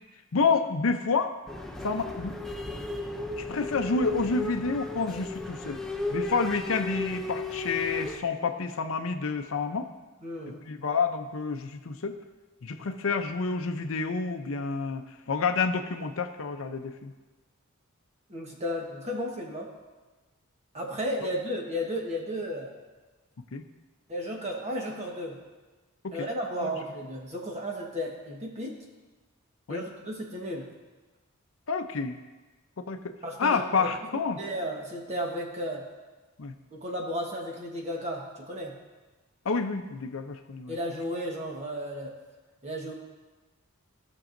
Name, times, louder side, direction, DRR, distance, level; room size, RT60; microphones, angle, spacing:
voice 1, 0.3-1.3 1.8-2.4 3.4-5.8 6.1-9.9 10.6-12.2 12.6-17.1 23.5-23.6 26.0-26.3 26.6-26.7 29.7-29.8 31.7-32.2 32.8-33.1 33.4-34.4 36.4-36.5 39.4-40.8, left 4 dB, 65° left, 7 dB, 0.6 m, -29 dB
sound 1, 1.5-8.2, left 2 dB, ahead, 0.5 m, -34 dB
voice 2, 10.2-10.6 18.3-19.7 20.7-22.7 24.1-25.4 26.1-28.8 29.7-30.7 33.2-33.9 34.4-35.8 36.7-38.7 40.7-42.1 42.6-42.9, equal, 30° right, 0 dB, 1.2 m, -34 dB
16.5 x 6.1 x 2.6 m, 1.2 s
head